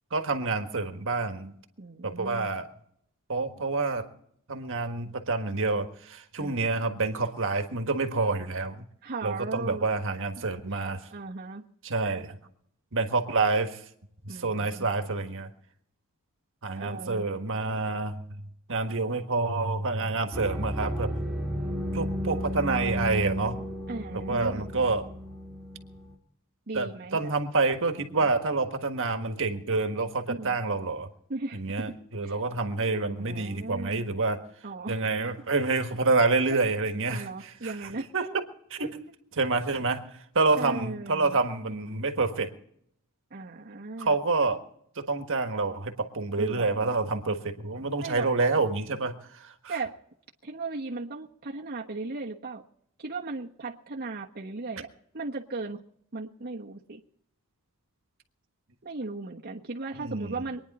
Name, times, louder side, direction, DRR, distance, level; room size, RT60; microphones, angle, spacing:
voice 1, 0.1-1.5 2.0-2.7 3.3-4.0 4.5-8.8 9.2-11.0 11.8-12.3 12.9-13.8 14.3-15.5 16.6-18.2 18.7-21.2 21.9-23.6 24.3-25.1 26.7-31.1 31.5-34.4 34.9-37.7 38.1-38.2 38.8-39.0 39.4-40.0 40.3-42.5 44.0-44.6 45.0-49.8 59.9-60.4, right 3 dB, 60° right, 7 dB, 1.6 m, -28 dB
voice 2, 1.8-2.5 6.4-6.7 9.0-9.9 10.7-11.6 14.3-15.0 16.8-17.2 23.9-24.6 26.7-27.3 28.0-28.3 30.3-30.6 31.3-31.9 32.2-32.4 33.2-34.2 34.6-35.0 36.5-36.6 37.1-38.4 38.8-38.9 40.6-41.4 43.3-44.2 46.4-46.9 48.0-48.3 49.7-49.9 50.4-52.6 53.0-54.9 55.1-55.8 56.1-57.0 58.8-60.6, right 3 dB, 45° right, -2 dB, 1.2 m, -37 dB
sound 1, 20.3-26.1, equal, ahead, 2.8 m, -33 dB
24.5 x 10.0 x 4.2 m, 0.70 s
head